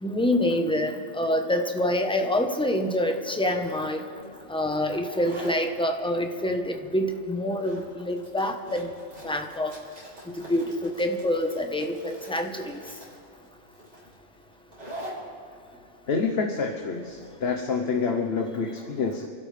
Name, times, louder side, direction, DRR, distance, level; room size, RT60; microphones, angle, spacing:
voice 1, 0.0-4.0 4.5-8.9 9.2-9.7 10.5-12.8, left 1 dB, 5° left, 4 dB, 0.9 m, -26 dB
sound 1, 4.2-17.6, equal, 90° right, 5.0 m, -45 dB
voice 2, 16.1-19.3, left 4 dB, 60° left, 3 dB, 1.2 m, -27 dB
28.0 x 12.0 x 3.4 m, 2.7 s
omnidirectional pair, 1.2 m